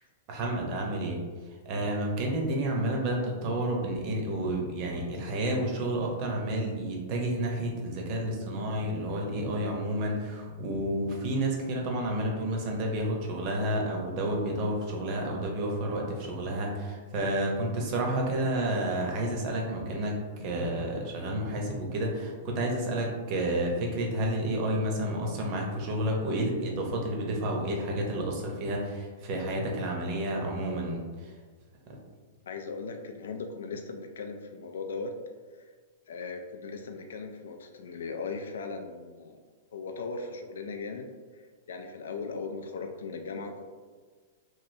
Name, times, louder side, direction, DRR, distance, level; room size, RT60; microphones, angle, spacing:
voice 1, 0.3-1.2 1.6-31.0, right 1 dB, 40° right, 0 dB, 0.7 m, -30 dB
voice 2, 32.5-35.1 35.6-35.7 36.1-39.4 39.7-41.1 41.3-41.4 41.7-43.6, left 4 dB, 90° left, 5 dB, 0.3 m, -38 dB
3.1 x 2.5 x 2.6 m, 1.5 s
hypercardioid pair, 150°, 0 cm